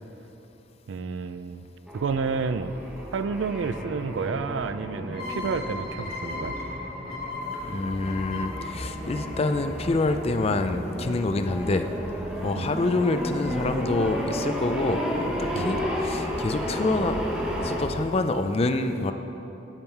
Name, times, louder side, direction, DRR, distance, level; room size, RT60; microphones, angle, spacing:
voice 1, 0.9-1.7 1.9-2.8 3.1-6.6 12.6-12.8 15.5-15.7, right 5 dB, 75° right, 12 dB, 0.4 m, -30 dB
sound 1, 1.9-17.9, equal, 5° right, 0.9 m, -33 dB
sound 2, 5.1-10.6, left 3 dB, 55° left, 2.4 m, -37 dB
voice 2, 7.6-11.9 12.4-17.2 17.6-19.1, left 2 dB, 35° left, 8 dB, 0.4 m, -27 dB
8.8 x 8.8 x 4.5 m, 3.0 s
head